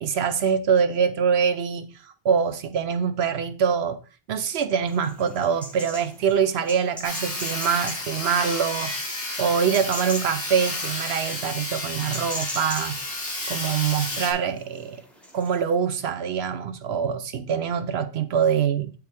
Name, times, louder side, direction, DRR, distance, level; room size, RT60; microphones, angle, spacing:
voice 1, 0.0-2.0 2.2-4.0 4.3-9.0 9.4-13.0 13.5-15.0 15.3-18.9, right 7 dB, 70° right, 0.8 m, -24 dB
sound 1, 4.8-15.6, equal, ahead, 1.1 m, -41 dB
Sawing, 7.0-14.3, left 2 dB, 85° left, 2.6 m, -31 dB
7.6 x 4.6 x 3.4 m
omnidirectional pair, 1.2 m